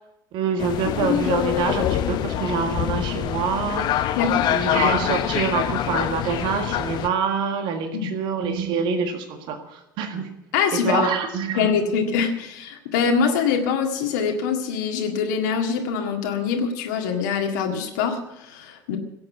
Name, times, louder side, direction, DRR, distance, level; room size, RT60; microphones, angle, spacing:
voice 1, 0.3-4.2 4.5-10.3 10.7-11.7, right 5 dB, 50° right, 6 dB, 1.7 m, -26 dB
sound 1, 0.6-7.1, left 11 dB, 45° left, 0.9 m, -25 dB
voice 2, 4.2-4.5 7.9-8.1 10.5-11.1 11.6-19.0, left 6 dB, 60° left, 2 dB, 1.8 m, -24 dB
17.0 x 7.8 x 8.2 m, 0.89 s
figure-of-eight pair, 70°, 11 cm